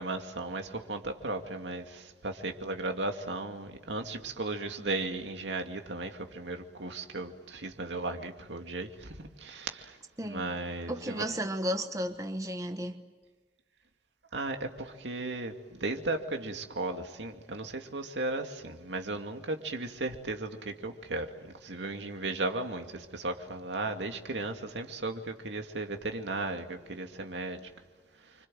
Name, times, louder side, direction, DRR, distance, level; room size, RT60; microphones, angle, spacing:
voice 1, 0.0-10.0 10.2-11.3 14.3-27.7, right 2 dB, 85° right, 2.4 m, -36 dB
voice 2, 10.9-13.0, equal, 20° right, 1.2 m, -33 dB
29.0 x 26.0 x 7.7 m
head